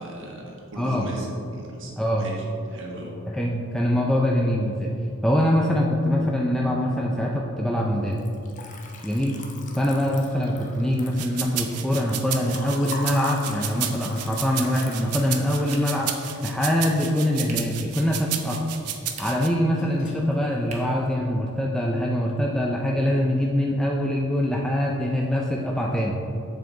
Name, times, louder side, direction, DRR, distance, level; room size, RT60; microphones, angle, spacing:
voice 1, 0.0-1.9 2.2-2.4 2.7-3.1, equal, 60° right, -2 dB, 1.7 m, -37 dB
voice 2, 0.8-1.1 2.0-2.3 3.3-4.9 5.2-8.2 9.0-9.4 9.8-16.1 16.4-18.7 19.2-26.2, left 1 dB, 5° left, -2 dB, 0.4 m, -24 dB
Liquid, 8.1-18.3 18.6-19.3 19.5-20.3, left 3 dB, 35° left, 0.8 m, -42 dB
sound 1, 11.2-19.5, right 10 dB, 80° right, 0.7 m, -32 dB
sound 2, 15.7-16.2 17.4-17.8 19.0-19.6 20.7-21.1, right 3 dB, 30° right, 1.2 m, -42 dB
7.7 x 7.2 x 3.9 m, 2.8 s
head